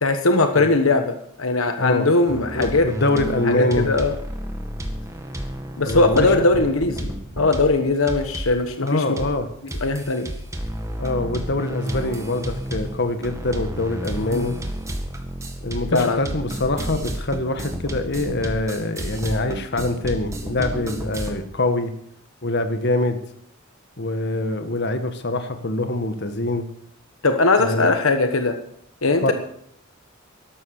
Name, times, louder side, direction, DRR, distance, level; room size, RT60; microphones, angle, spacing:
voice 1, 0.0-2.9 3.5-4.1 5.8-9.2 9.8-10.3 14.3-14.5 15.9-16.2 27.2-28.5 29.0-29.3, left 3 dB, 80° left, 7 dB, 1.3 m, -20 dB
voice 2, 1.8-3.9 5.8-6.3 8.8-9.5 11.0-14.6 15.6-21.9 22.4-23.2 24.0-26.7 27.6-27.9 29.2-29.3, left 2 dB, 55° left, 8 dB, 1.6 m, -24 dB
sound 1, 2.3-8.9 9.2-9.4 9.7-21.3, equal, 15° right, 1.9 m, -31 dB
12.5 x 12.0 x 6.6 m, 0.68 s
head